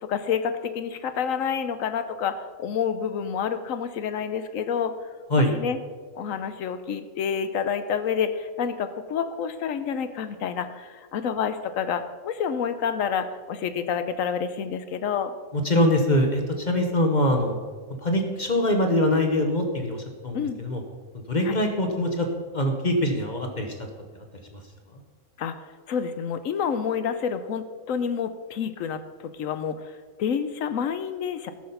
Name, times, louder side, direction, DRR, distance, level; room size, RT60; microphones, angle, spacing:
voice 1, 0.0-4.9 5.4-5.8 6.2-15.3 20.3-20.6 21.4-21.6 25.4-25.5 25.9-31.5, left 7 dB, 80° left, 10 dB, 1.1 m, -28 dB
voice 2, 15.5-17.6 18.0-20.8 21.3-22.3 22.5-23.7 24.5-24.6, left 1 dB, 35° left, 4 dB, 1.1 m, -23 dB
13.5 x 6.2 x 5.5 m, 1.5 s
omnidirectional pair, 1.4 m